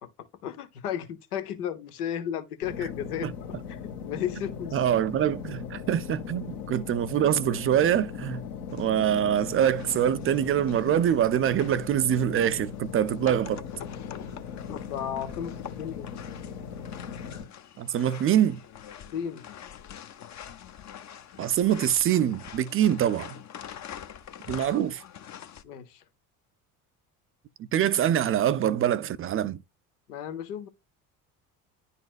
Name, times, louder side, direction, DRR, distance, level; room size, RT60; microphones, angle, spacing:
voice 1, 0.0-4.8 14.7-16.1 19.1-19.4 25.6-26.0 30.1-30.7, left 9 dB, 85° left, 0.9 m, -34 dB
sound 1, 2.6-17.4, left 7 dB, 65° left, 1.3 m, -39 dB
voice 2, 4.7-8.4 8.7-13.6 17.8-18.6 21.4-23.4 24.5-25.0 27.7-29.6, right 10 dB, 30° right, 0.4 m, -24 dB
sound 2, 8.7-25.6, left 9 dB, 40° left, 0.7 m, -46 dB
10.5 x 4.1 x 2.4 m
hypercardioid pair, 70°, 44 cm